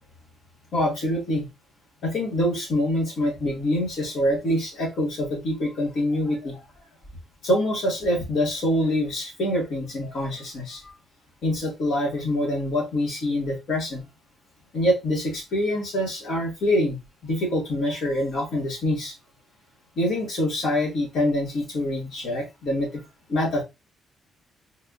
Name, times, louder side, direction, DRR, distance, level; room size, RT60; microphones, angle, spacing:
voice 1, 0.7-1.5 2.0-6.6 7.4-10.9 11.4-14.0 14.7-17.0 17.2-19.1 20.0-23.0 23.3-23.6, left 1 dB, 70° left, -2 dB, 2.1 m, -25 dB
4.1 x 3.3 x 2.6 m, 0.24 s
cardioid pair, 90°, 0 cm